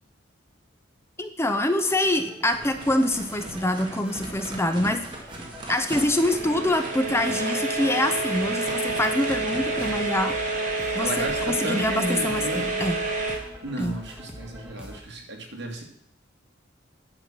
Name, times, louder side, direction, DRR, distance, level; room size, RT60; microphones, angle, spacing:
voice 1, 1.2-5.2 5.7-10.3 10.9-13.0 13.8-14.0, left 1 dB, 15° left, 8 dB, 0.7 m, -25 dB
sound 1, 1.5-15.0, equal, 5° right, 1.8 m, -45 dB
sound 2, 2.5-10.3, right 1 dB, 25° right, 2.2 m, -39 dB
sound 3, 5.7-13.4, right 2 dB, 40° right, 2.3 m, -28 dB
voice 2, 10.7-12.7 13.6-15.8, right 1 dB, 65° right, 1 dB, 2.5 m, -33 dB
10.5 x 6.7 x 6.0 m, 0.70 s
head